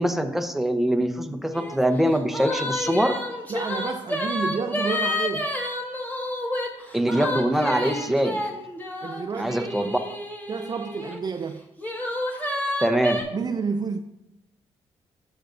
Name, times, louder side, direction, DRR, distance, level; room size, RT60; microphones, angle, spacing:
voice 1, 0.0-3.2 6.9-8.4 9.3-10.0 12.8-13.2, right 1 dB, ahead, 0.8 m, -23 dB
sound 1, 1.5-1.8 2.1-11.2 11.8-13.2, left 1 dB, 15° left, 1.7 m, -29 dB
voice 2, 3.5-5.5 9.0-9.9 10.5-11.6 13.3-14.0, right 5 dB, 35° right, 0.4 m, -30 dB
11.5 x 6.2 x 2.6 m
supercardioid pair, 65°, 12 cm